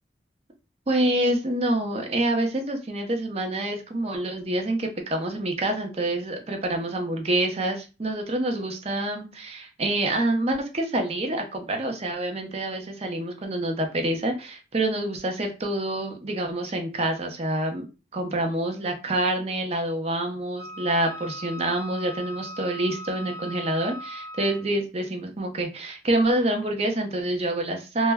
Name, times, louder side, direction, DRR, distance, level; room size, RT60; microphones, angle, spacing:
voice 1, 0.9-17.9 18.1-28.1, right 1 dB, 35° right, 4 dB, 0.5 m, -27 dB
Wind instrument woodwind instrument, 20.6-24.8, equal, 15° left, 0.5 m, -39 dB
2.1 x 2.1 x 3.4 m, 0.31 s
head